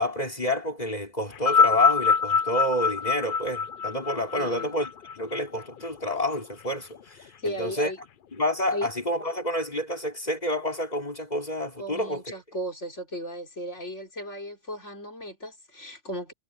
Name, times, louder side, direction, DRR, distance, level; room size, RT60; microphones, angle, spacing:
voice 1, 0.0-7.9 8.3-12.2, left 1 dB, 35° left, 4.6 m, -29 dB
sound 1, 1.3-5.9 6.8-6.9, left 6 dB, 55° left, 0.8 m, -24 dB
voice 2, 4.3-4.8 7.4-8.0 8.7-8.9 11.8-16.3, equal, 90° left, 5.3 m, -35 dB
omnidirectional pair, 1.2 m